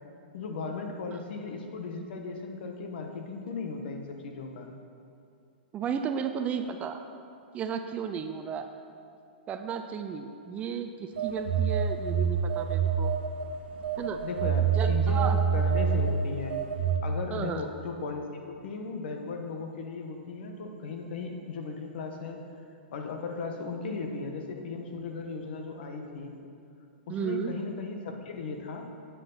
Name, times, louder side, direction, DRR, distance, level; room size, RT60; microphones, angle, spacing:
voice 1, 0.3-4.7 14.2-16.6 17.0-22.4 22.9-26.3 27.1-28.9, left 4 dB, 65° left, 4 dB, 1.3 m, -37 dB
voice 2, 5.7-7.0 7.5-8.7 9.5-13.1 14.0-14.2 14.6-15.3 17.3-17.6 27.1-27.5, right 7 dB, 20° right, 7 dB, 0.5 m, -34 dB
Telephone, 11.2-13.5 13.8-17.0, right 6 dB, 70° right, 1.1 m, -26 dB
9.7 x 8.4 x 4.1 m, 2.4 s
hypercardioid pair, 135°, 6 cm